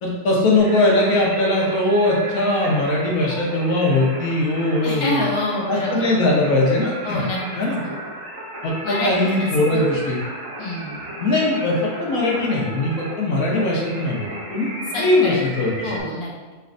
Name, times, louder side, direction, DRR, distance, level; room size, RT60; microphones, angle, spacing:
voice 1, 0.0-5.2 5.7-7.3 7.6-7.8 8.6-10.2 11.2-15.9, left 2 dB, 65° left, -2 dB, 1.1 m, -20 dB
Singing, 0.6-16.0, right 1 dB, 60° right, 1.4 m, -35 dB
voice 2, 4.8-6.5 7.0-8.0 8.8-9.1 9.4-9.8 10.6-11.1 14.9-15.4 15.8-16.5, left 2 dB, 30° left, -5 dB, 0.5 m, -27 dB
5.3 x 3.1 x 2.5 m, 1.3 s
omnidirectional pair, 1.7 m